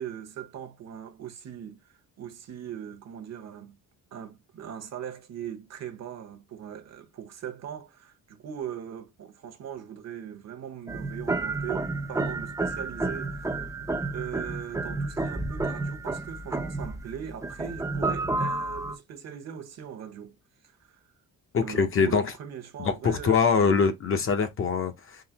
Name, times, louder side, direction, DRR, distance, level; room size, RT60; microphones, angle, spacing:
voice 1, 0.0-3.8 4.1-13.7 14.1-20.4 20.6-21.0 21.6-23.9, right 9 dB, 50° right, 0.8 m, -40 dB
sound 1, 10.9-19.0, right 2 dB, 10° right, 0.4 m, -31 dB
voice 2, 21.5-22.3 22.8-25.2, left 5 dB, 40° left, 0.7 m, -24 dB
3.8 x 2.7 x 2.8 m
cardioid pair, 145°, 33 cm